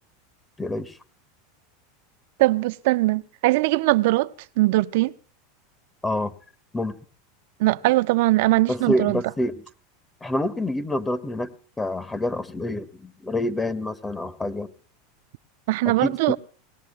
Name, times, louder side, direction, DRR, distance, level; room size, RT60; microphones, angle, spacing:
voice 1, 0.6-1.0 6.0-6.3 6.7-7.0 8.7-9.6 10.2-14.7 15.8-16.4, left 1 dB, 10° left, 1.5 m, -27 dB
voice 2, 2.4-4.3 4.6-5.1 7.6-9.2 15.7-16.4, right 19 dB, 70° right, 0.6 m, -20 dB
27.5 x 19.5 x 2.2 m
supercardioid pair, 135°, 0 cm